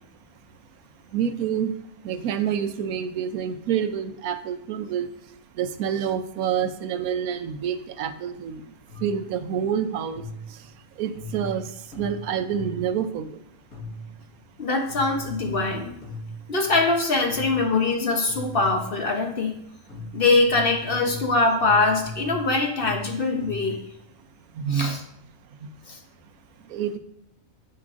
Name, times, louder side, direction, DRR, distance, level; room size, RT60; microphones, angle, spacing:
voice 1, 1.1-1.7 2.0-5.1 5.6-8.6 9.0-10.2 11.0-11.7 12.0-13.4 24.6-25.0 26.7-27.0, right 8 dB, 85° right, 9 dB, 1.1 m, -27 dB
sound 1, 8.9-9.3 10.1-10.6 11.1-13.0 13.7-14.2 14.9-17.0 17.3-17.8 18.3-19.0 19.9-23.9, left 1 dB, 90° left, 2.3 m, -38 dB
voice 2, 14.6-15.9 16.5-19.6 20.1-23.8 24.7-25.0 25.9-26.0, left 3 dB, 45° left, 3 dB, 0.9 m, -23 dB
9.7 x 6.6 x 2.5 m, 0.77 s
omnidirectional pair, 1.5 m